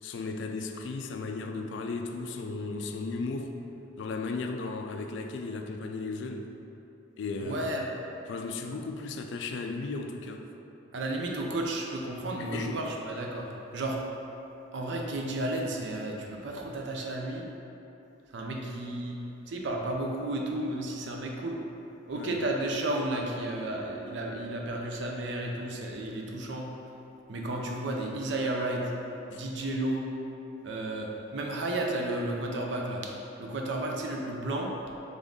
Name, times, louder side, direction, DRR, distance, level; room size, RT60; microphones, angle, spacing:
voice 1, 0.0-3.5 4.0-6.5 7.2-7.7 8.3-10.5 12.4-12.8 22.1-22.4 29.3-29.4, left 3 dB, 65° left, 5 dB, 0.3 m, -35 dB
voice 2, 7.4-7.8 10.9-14.0 14.7-17.5 18.3-19.2 19.5-21.6 22.1-26.7 27.3-28.9 29.3-30.1 30.6-33.1 33.4-34.7, right 1 dB, 60° right, 0 dB, 0.5 m, -32 dB
3.9 x 3.6 x 3.6 m, 2.9 s
head